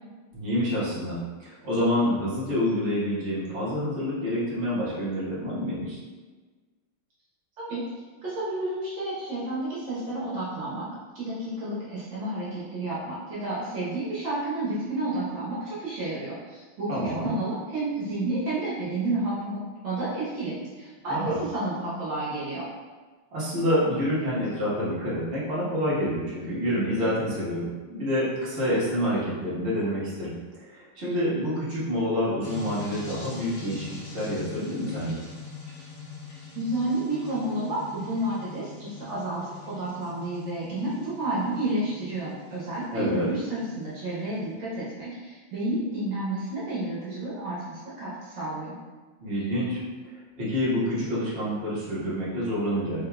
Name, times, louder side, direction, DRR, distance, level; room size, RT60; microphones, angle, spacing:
voice 1, 0.3-6.0 16.9-17.3 21.1-21.4 23.3-30.3 30.6-35.2 42.9-43.2 49.2-49.8 50.1-53.1, equal, 35° right, -10 dB, 1.3 m, -27 dB
voice 2, 8.2-10.9 11.1-22.6 36.5-48.7, right 2 dB, 65° right, -9 dB, 1.6 m, -31 dB
sound 1, 32.4-44.5, left 5 dB, 75° left, 0.8 m, -43 dB
3.9 x 3.6 x 2.2 m, 1.4 s
omnidirectional pair, 2.4 m